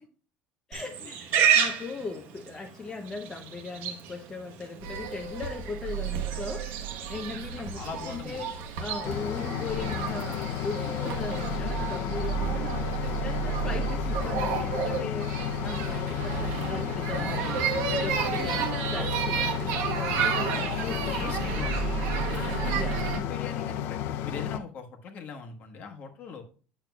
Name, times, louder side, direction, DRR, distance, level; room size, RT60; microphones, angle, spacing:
voice 1, 0.7-6.7 7.1-12.7 13.2-17.6 18.0-21.3 22.7-23.0, left 4 dB, 15° left, 2 dB, 0.6 m, -38 dB
Livestock farm animals working animals, 0.7-11.6, right 8 dB, 60° right, 1.0 m, -33 dB
sound 1, 4.8-23.2, right 6 dB, 85° right, 1.1 m, -32 dB
voice 2, 7.7-8.4 20.7-21.9 22.1-26.4, left 5 dB, 40° left, 4 dB, 1.1 m, -41 dB
sound 2, 9.0-24.6, left 11 dB, 60° left, 0.4 m, -33 dB
9.2 x 6.6 x 2.2 m, 0.39 s
cardioid pair, 165°, 4 cm